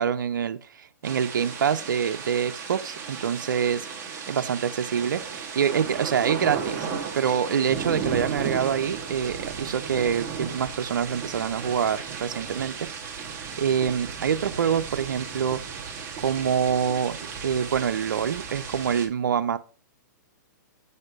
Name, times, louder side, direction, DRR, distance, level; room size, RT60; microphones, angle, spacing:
voice 1, 0.0-3.9 4.3-5.2 5.6-6.9 7.1-12.9 13.6-15.6 16.2-17.2 17.4-19.6, right 7 dB, 85° right, 0.5 m, -26 dB
sound 1, 1.0-19.1, right 6 dB, 20° right, 1.6 m, -35 dB
6.8 x 4.3 x 4.9 m
hypercardioid pair, 135°, 10 cm